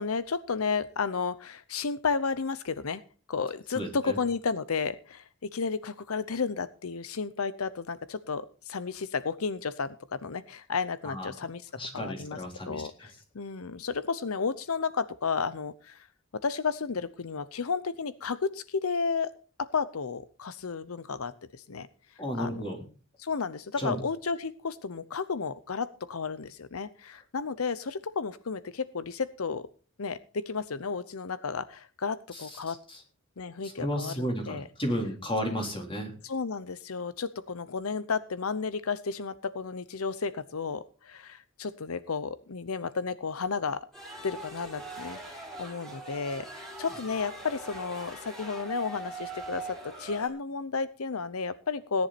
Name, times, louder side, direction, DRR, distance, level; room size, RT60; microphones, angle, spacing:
voice 1, 0.0-3.0 3.3-12.4 12.7-16.1 16.3-19.3 19.6-21.9 22.4-22.7 23.2-29.7 30.0-32.8 33.4-34.7 36.2-43.9 44.2-52.1, left 5 dB, 85° left, 15 dB, 0.7 m, -32 dB
voice 2, 3.7-4.1 11.0-11.3 11.7-12.9 22.2-22.8 23.8-24.0 32.3-32.4 32.9-33.0 33.6-36.1, equal, 25° left, 3 dB, 3.8 m, -33 dB
sound 1, 43.9-50.3, right 2 dB, ahead, 4.4 m, -42 dB
17.5 x 10.5 x 4.2 m, 0.37 s
head